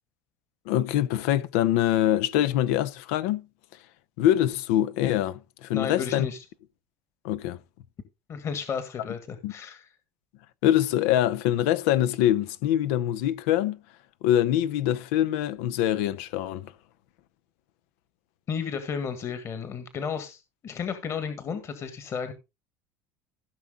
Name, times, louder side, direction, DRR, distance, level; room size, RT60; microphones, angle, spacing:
voice 1, 0.7-3.4 4.2-6.3 7.2-7.6 9.4-9.5 10.6-13.8 14.2-16.7, left 12 dB, 80° left, 0.7 m, -24 dB
voice 2, 5.7-6.4 8.3-9.9 18.5-22.3, left 6 dB, 40° left, 1.7 m, -33 dB
15.5 x 6.1 x 3.8 m
supercardioid pair, 110°, 8 cm